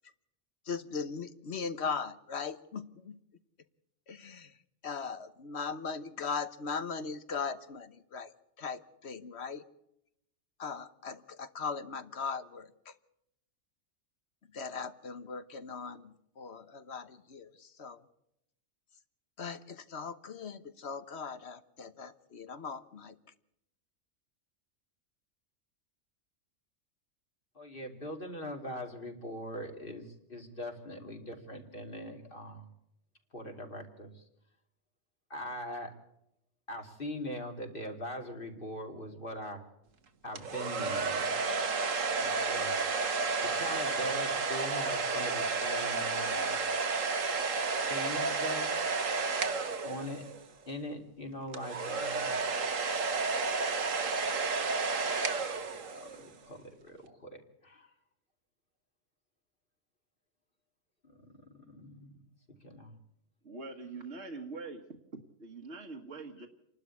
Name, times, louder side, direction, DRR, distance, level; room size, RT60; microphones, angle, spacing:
voice 1, 0.7-3.2 4.1-4.5 4.8-8.3 8.6-9.6 10.6-12.9 14.5-18.0 19.4-23.1, left 5 dB, 60° left, 12 dB, 1.4 m, -39 dB
voice 2, 27.5-32.7 33.3-34.2 35.3-35.9 36.7-39.6 40.2-41.3 42.2-42.7 43.4-46.6 47.9-48.7 49.8-50.3 50.7-52.3 55.9-57.9 61.0-61.1 61.5-62.2 62.6-62.9, equal, 45° left, 3 dB, 3.0 m, -41 dB
sound 1, 40.4-50.5 51.5-56.3, right 4 dB, 80° right, 1.8 m, -31 dB
voice 3, 63.4-64.8 65.1-66.5, right 3 dB, 60° right, 2 dB, 1.8 m, -43 dB
28.5 x 12.0 x 8.4 m, 0.81 s
omnidirectional pair, 1.3 m